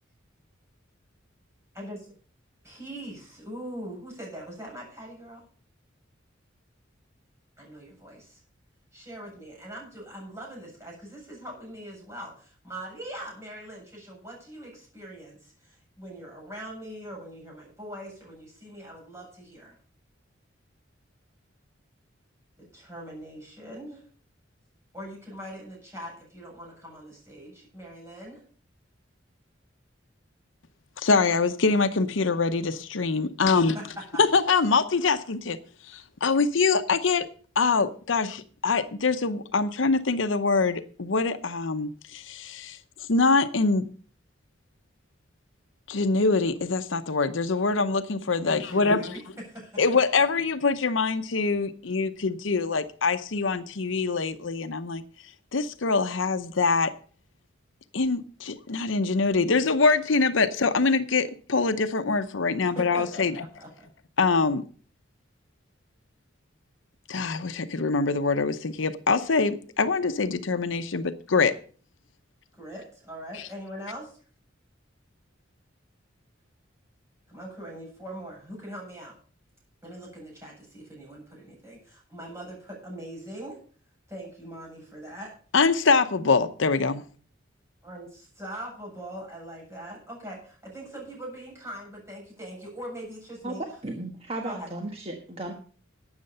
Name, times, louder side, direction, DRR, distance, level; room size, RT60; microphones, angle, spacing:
voice 1, 1.7-2.1 2.6-5.5 7.6-8.4 8.9-19.8 22.6-24.0 24.9-28.4 33.5-34.2 48.4-49.8 62.6-63.2 63.6-63.9 72.5-74.2 77.3-79.2 79.8-83.6 84.1-85.4 87.8-93.6 94.4-94.7, right 1 dB, 15° right, -3 dB, 7.8 m, -41 dB
voice 2, 31.0-33.8 34.2-35.6 35.9-37.3 37.6-42.8 43.1-43.9 45.9-49.1 49.8-55.0 55.5-56.9 57.9-63.4 64.2-64.6 67.1-71.5 85.5-87.0, left 4 dB, 75° left, 11 dB, 0.8 m, -24 dB
voice 3, 93.8-95.5, right 2 dB, 30° right, 2 dB, 1.4 m, -35 dB
12.5 x 8.8 x 5.4 m, 0.42 s
head